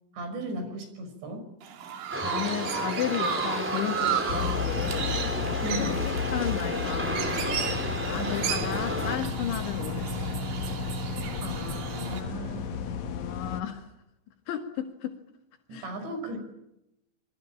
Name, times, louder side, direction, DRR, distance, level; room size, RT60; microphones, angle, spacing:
voice 1, 0.1-1.5 5.6-6.1 8.2-8.5 11.4-12.9 15.7-16.4, right 1 dB, 70° right, 7 dB, 7.8 m, -36 dB
Chirp tweet, 1.6-12.2, right 8 dB, 90° right, 5.0 m, -34 dB
sound 1, 2.1-9.2, equal, 5° right, 3.3 m, -32 dB
voice 2, 2.2-5.2 5.8-7.6 8.1-10.5 13.0-13.9 14.5-15.2 15.7-15.9, left 10 dB, 75° left, 5 dB, 4.3 m, -34 dB
sound 2, 4.3-13.6, left 6 dB, 60° left, 2.1 m, -33 dB
26.5 x 23.5 x 8.8 m, 0.87 s
omnidirectional pair, 5.3 m